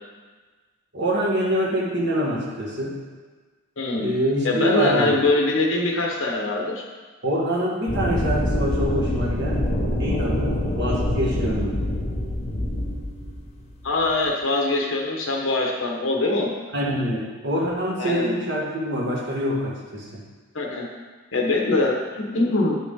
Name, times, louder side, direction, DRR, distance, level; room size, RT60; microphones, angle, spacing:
voice 1, 0.9-3.0 4.0-5.2 7.2-11.8 16.7-20.2, equal, 50° right, -4 dB, 1.7 m, -25 dB
voice 2, 3.8-4.1 4.4-6.8 13.8-16.5 18.0-18.3 20.5-20.9 21.3-22.8, left 2 dB, 65° left, -1 dB, 1.3 m, -23 dB
sound 1, 7.9-14.2, left 1 dB, 30° left, 1.0 m, -25 dB
9.4 x 5.9 x 3.8 m, 1.4 s
head